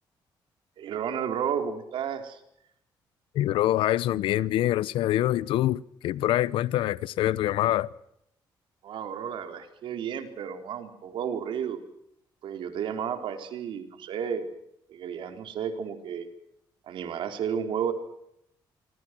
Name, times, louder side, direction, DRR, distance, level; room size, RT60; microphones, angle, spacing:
voice 1, 0.8-2.4 8.8-11.8 12.4-14.4 14.9-16.3 16.9-17.9, right 8 dB, 75° right, 4.3 m, -32 dB
voice 2, 3.3-7.9, left 14 dB, 85° left, 0.9 m, -25 dB
27.0 x 25.5 x 6.2 m
cardioid pair, 100°, 9 cm